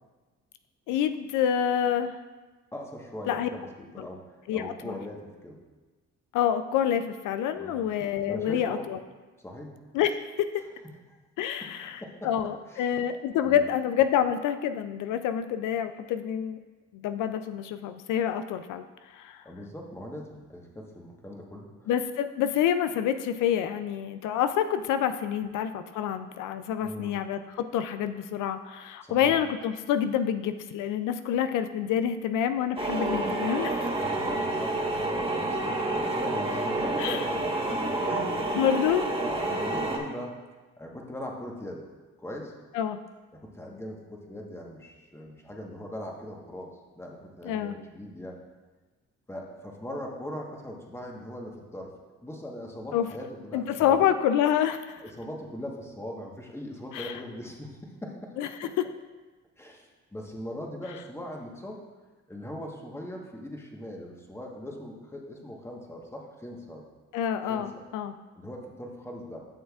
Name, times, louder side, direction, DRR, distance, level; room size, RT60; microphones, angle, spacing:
voice 1, 0.9-2.2 3.3-3.5 4.0-4.1 4.5-4.9 6.3-9.0 9.9-10.5 11.4-16.6 16.9-19.4 21.9-27.4 27.7-33.9 37.0-37.2 38.5-39.0 42.7-43.0 47.4-47.8 52.9-53.1 53.5-55.0 56.9-57.2 58.4-58.8 67.1-68.1, left 9 dB, 85° left, 10 dB, 0.5 m, -27 dB
voice 2, 2.7-5.6 7.5-7.9 8.3-8.9 9.4-9.8 11.1-11.2 11.6-12.3 12.7-13.1 13.4-13.7 19.4-21.9 26.8-27.2 29.0-29.4 34.0-38.3 39.2-40.4 40.8-41.8 42.2-42.5 43.3-48.4 49.3-51.9 52.2-54.1 55.0-58.3 59.6-61.8 62.3-66.8 67.5-67.8 68.3-69.4, left 1 dB, 10° left, 0 dB, 1.3 m, -40 dB
sound 1, 32.8-40.0, right 2 dB, 20° right, 1.3 m, -29 dB
11.5 x 6.3 x 2.4 m, 1.3 s
cardioid pair, 90°, 30 cm